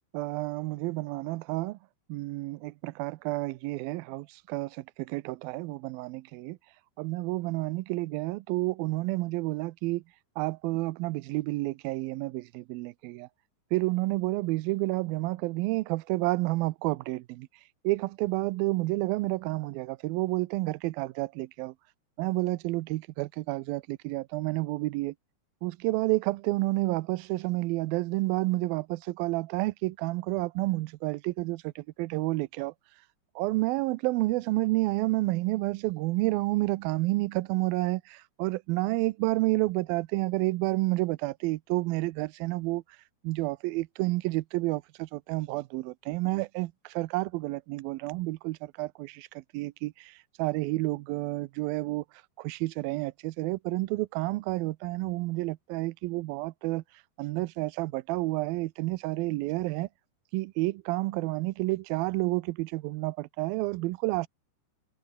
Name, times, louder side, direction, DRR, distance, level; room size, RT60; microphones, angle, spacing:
voice 1, 0.1-1.8 2.1-6.6 7.0-10.0 10.4-13.3 13.7-17.5 17.8-21.7 22.2-25.1 25.6-32.7 33.4-42.8 43.2-52.0 52.4-56.8 57.2-59.9 60.3-64.3, right 20 dB, 80° right, 2.2 m, -30 dB
omnidirectional pair, 4.7 m